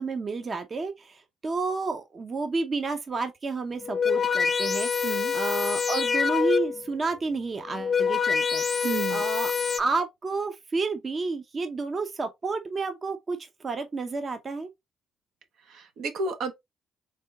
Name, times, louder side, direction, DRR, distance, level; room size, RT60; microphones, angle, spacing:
voice 1, 0.0-9.5 9.8-13.4 13.6-14.7, right 4 dB, 35° right, 0.7 m, -31 dB
sound 1, 3.7-6.9 7.6-9.8, left 6 dB, 35° left, 0.4 m, -26 dB
voice 2, 5.0-5.3 8.8-9.2 15.7-16.5, right 4 dB, 80° right, 1.0 m, -31 dB
3.7 x 3.4 x 2.8 m
cardioid pair, 90°, 0 cm